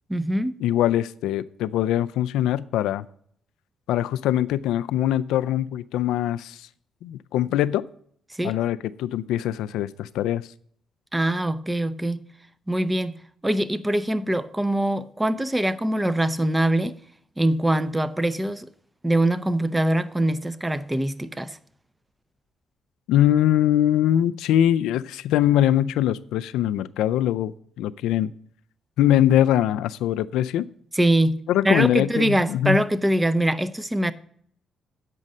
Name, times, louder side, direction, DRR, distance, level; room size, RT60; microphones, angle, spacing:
voice 1, 0.1-0.6 8.3-8.6 11.1-12.2 12.7-13.2 13.4-17.0 17.4-18.7 19.0-21.6 30.9-31.4 31.6-34.1, right 1 dB, 10° right, 0.6 m, -23 dB
voice 2, 0.6-3.1 3.9-6.6 7.0-7.8 8.4-10.4 23.1-28.3 29.0-30.7 31.5-32.8, left 12 dB, 90° left, 0.4 m, -22 dB
8.2 x 5.4 x 7.5 m
cardioid pair, 90°, 0 cm